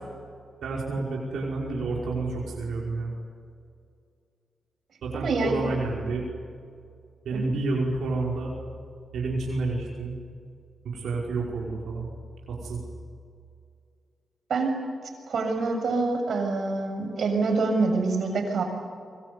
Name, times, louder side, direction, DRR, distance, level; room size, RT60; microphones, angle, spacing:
voice 1, 0.6-3.1 5.0-6.3 7.3-8.5 9.1-10.1 10.9-12.1 12.5-12.8, right 3 dB, 85° right, -3 dB, 5.3 m, -29 dB
voice 2, 5.1-5.7 7.3-7.5 14.5-14.7 15.3-18.6, right 3 dB, 65° right, 4 dB, 6.9 m, -26 dB
27.0 x 23.5 x 8.3 m, 2.3 s
cardioid pair, 85°, 0 cm